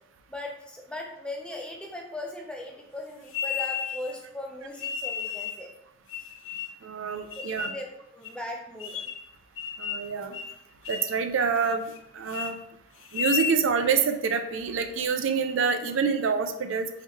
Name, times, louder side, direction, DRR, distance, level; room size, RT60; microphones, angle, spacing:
voice 1, 0.3-5.7 7.4-7.9 8.1-9.0, left 1 dB, 5° left, 0 dB, 0.6 m, -38 dB
sound 1, 3.3-4.1 4.8-5.6 6.1-6.8 7.3-7.8 8.2-8.3 8.8-9.3 9.6-10.1 10.3-10.5 10.8-11.2 11.6-12.0 12.3-12.5 13.0-13.6, left 7 dB, 80° left, 0.5 m, -33 dB
voice 2, 6.8-7.7 9.8-10.4 10.9-12.6 13.1-16.9, right 5 dB, 85° right, 7 dB, 0.5 m, -27 dB
3.9 x 3.1 x 4.1 m, 0.79 s
head